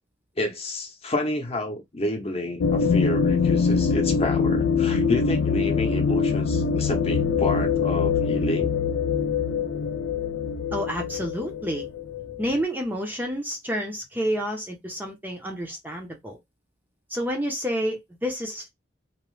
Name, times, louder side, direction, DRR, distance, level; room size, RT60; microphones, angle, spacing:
voice 1, 0.4-8.7, left 1 dB, 35° left, 0.7 m, -30 dB
sound 1, 2.6-12.6, left 5 dB, 75° left, 0.3 m, -24 dB
voice 2, 10.7-11.8 12.4-16.4 17.1-18.7, equal, 10° right, 0.5 m, -29 dB
2.9 x 2.1 x 3.1 m
head